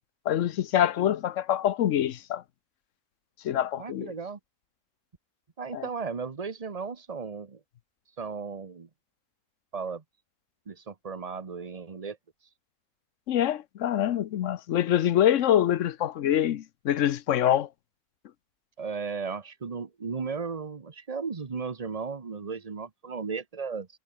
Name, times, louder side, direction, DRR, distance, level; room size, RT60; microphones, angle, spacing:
voice 1, 0.3-2.4 3.4-4.1 5.7-5.8 13.3-17.7, left 11 dB, 60° left, 1.0 m, -25 dB
voice 2, 3.8-4.4 5.6-7.6 8.2-8.9 9.7-10.0 10.7-12.2 18.8-23.9, right 5 dB, 30° right, 1.0 m, -35 dB
omnidirectional pair, 1.6 m